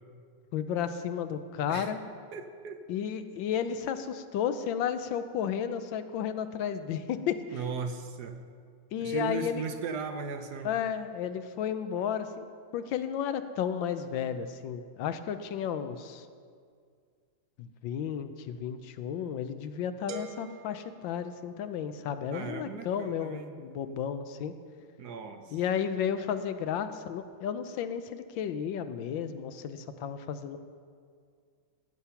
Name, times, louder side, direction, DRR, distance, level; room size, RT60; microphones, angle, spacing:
voice 1, 0.5-2.0 2.9-7.6 8.9-9.6 10.6-12.5 12.7-16.3 17.6-24.5 25.5-30.6, left 8 dB, 75° left, 10 dB, 1.4 m, -33 dB
voice 2, 2.3-2.8 7.5-8.4 9.0-10.7 22.3-23.5 25.0-25.6, right 5 dB, 65° right, 7 dB, 1.2 m, -37 dB
sound 1, 20.1-22.0, right 6 dB, 80° right, 1.7 m, -47 dB
15.5 x 8.5 x 5.7 m, 2.1 s
omnidirectional pair, 2.1 m